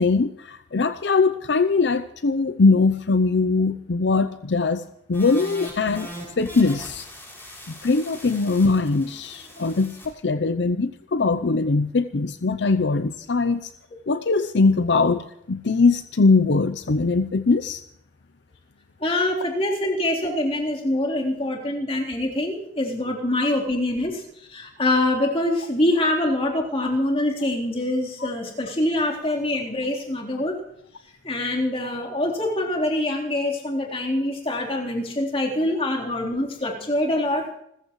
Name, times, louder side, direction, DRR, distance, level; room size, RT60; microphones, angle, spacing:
voice 1, 0.0-4.8 5.1-6.1 6.4-7.1 7.7-13.7 14.1-17.8 27.4-27.5 28.2-28.3, left 3 dB, 75° left, 11 dB, 0.6 m, -21 dB
sound 1, 5.1-10.1, equal, 15° left, 6.2 m, -40 dB
voice 2, 19.0-24.2 24.5-30.6 31.2-37.5, left 1 dB, 30° left, -2 dB, 3.7 m, -24 dB
30.0 x 14.5 x 3.2 m, 0.77 s
head